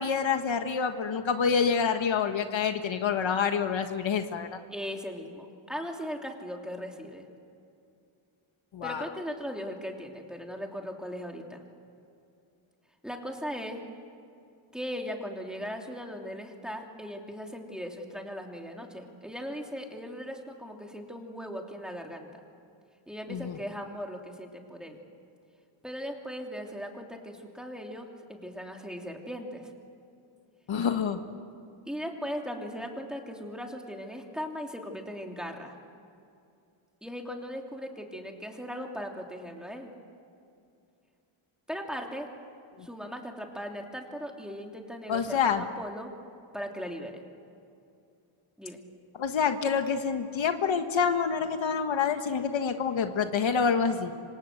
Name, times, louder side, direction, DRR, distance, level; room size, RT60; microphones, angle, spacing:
voice 1, 0.0-4.6 8.7-9.1 23.3-23.6 30.7-31.2 42.8-42.9 45.1-45.6 49.2-54.1, left 6 dB, 65° left, 7 dB, 1.5 m, -27 dB
voice 2, 4.7-7.3 8.8-11.6 13.0-13.8 14.7-22.3 23.1-25.0 25.8-29.7 31.9-35.8 37.0-39.9 41.7-42.3 42.8-46.1 46.5-47.2 48.6-48.8, equal, ahead, 1 dB, 2.9 m, -38 dB
27.0 x 26.0 x 7.8 m, 2.5 s
wide cardioid pair, 140°, 50 cm